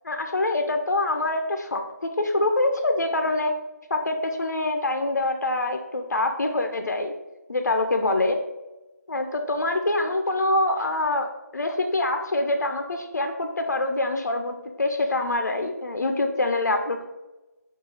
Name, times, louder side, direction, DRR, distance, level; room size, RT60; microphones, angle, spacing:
voice 1, 0.0-1.8 2.2-3.5 3.9-7.1 7.5-8.4 9.1-11.3 11.5-17.1, left 2 dB, 70° left, 5 dB, 0.4 m, -25 dB
2.9 x 2.4 x 3.8 m, 1.0 s
figure-of-eight pair, 180°, 10 cm